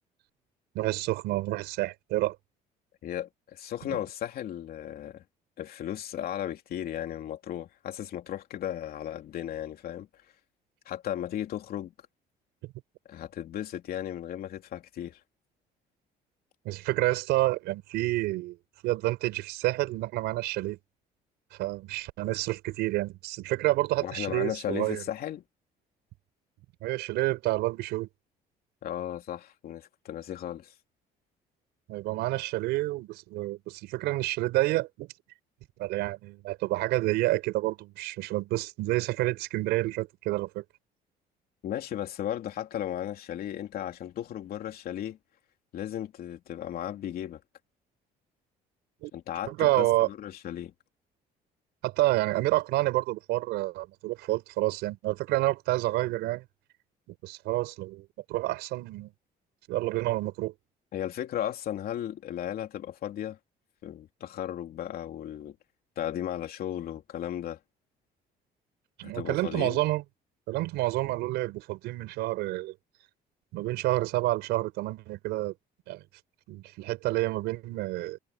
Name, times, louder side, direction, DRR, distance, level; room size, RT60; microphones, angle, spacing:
voice 1, 0.7-2.3 3.9-4.0 16.6-18.6 18.8-20.8 21.6-25.0 26.8-28.1 31.9-35.1 35.8-40.6 49.0-49.1 49.5-50.1 51.8-56.4 57.2-59.1 59.7-60.5 69.0-70.0 70.5-72.7 73.5-75.5 75.9-76.0 76.5-78.2, right 18 dB, 90° right, 4.9 m, -29 dB
voice 2, 3.0-5.2 5.6-10.1 10.8-11.9 13.1-15.2 24.0-25.4 28.8-30.7 41.6-45.2 45.7-47.4 49.1-50.7 60.9-63.4 63.8-65.5 66.0-67.6 69.0-69.8, left 11 dB, 65° left, 3.1 m, -35 dB
cardioid pair, 110°, 17 cm